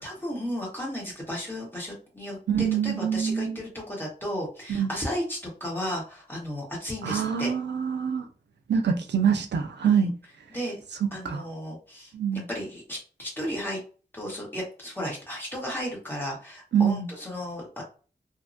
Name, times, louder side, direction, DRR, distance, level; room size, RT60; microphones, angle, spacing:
voice 1, 0.0-7.5 9.8-10.1 10.5-10.7 11.1-13.8 14.1-17.8, equal, 10° left, 1.3 m, -34 dB
voice 2, 2.5-3.6 4.7-4.9 7.0-8.3 8.7-10.1 11.2-11.4 12.1-12.5 16.7-17.1, right 7 dB, 85° right, 0.4 m, -25 dB
2.7 x 2.2 x 2.6 m
wide cardioid pair, 90°, 18 cm